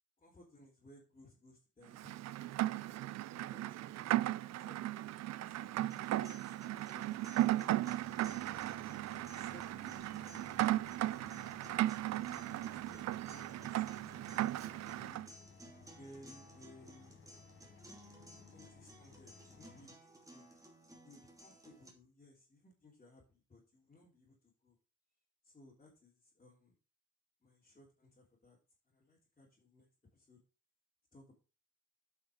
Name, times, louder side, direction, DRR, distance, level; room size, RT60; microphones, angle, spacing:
voice 1, 0.2-2.5 2.8-4.8 5.4-8.6 9.1-12.0 12.6-15.2 16.0-17.2 18.5-20.5 21.0-24.3 24.6-24.8 25.4-26.7 27.4-28.6 28.9-29.9 30.1-30.4 31.1-31.3, left 1 dB, 25° left, -5 dB, 3.3 m, -61 dB
Rain, 1.9-15.3, right 15 dB, 60° right, 0.5 m, -36 dB
sound 1, 5.9-21.9, right 1 dB, 10° right, 2.5 m, -58 dB
sound 2, 6.7-6.8 7.3-7.4 7.7-19.9, left 6 dB, 40° left, 1.2 m, -60 dB
8.5 x 5.7 x 4.8 m, 0.33 s
cardioid pair, 90°, 30 cm